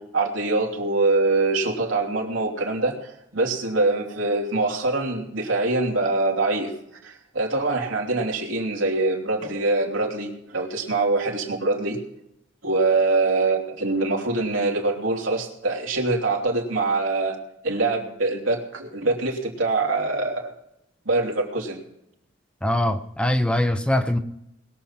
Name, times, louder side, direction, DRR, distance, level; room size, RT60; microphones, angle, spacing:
voice 1, 0.0-6.7 7.0-12.0 12.6-17.4 17.6-20.5 21.0-21.8, right 3 dB, 85° right, 0 dB, 2.9 m, -24 dB
voice 2, 22.6-24.2, left 1 dB, 5° left, 8 dB, 0.7 m, -22 dB
21.0 x 7.3 x 5.8 m, 0.82 s
head